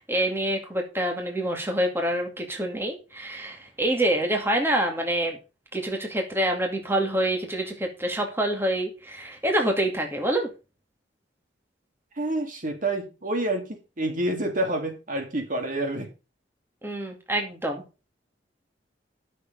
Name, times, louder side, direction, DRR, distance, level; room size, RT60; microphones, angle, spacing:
voice 1, 0.0-5.4 5.7-10.5 16.8-17.8, right 1 dB, 15° right, 2 dB, 2.3 m, -26 dB
voice 2, 12.2-16.1, right 1 dB, 45° right, 4 dB, 2.3 m, -28 dB
11.0 x 6.7 x 5.4 m, 0.31 s
head